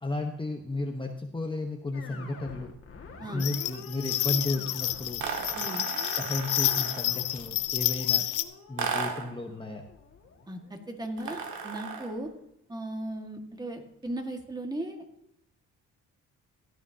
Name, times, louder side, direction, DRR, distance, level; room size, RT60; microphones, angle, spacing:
voice 1, 0.0-2.7 3.3-5.2 6.2-8.2 8.7-9.8, left 2 dB, 15° left, 3 dB, 1.1 m, -33 dB
sound 1, 1.9-11.2, left 4 dB, 45° left, 2.1 m, -48 dB
sound 2, 3.4-8.4, left 14 dB, 80° left, 0.7 m, -29 dB
sound 3, 5.2-7.2 8.8-9.4 11.2-12.2, right 5 dB, 80° right, 1.9 m, -35 dB
voice 2, 5.5-5.9 10.5-12.3 12.7-15.0, right 1 dB, 15° right, 3 dB, 1.8 m, -37 dB
16.0 x 10.5 x 2.9 m, 0.77 s
cardioid pair, 90°, 30 cm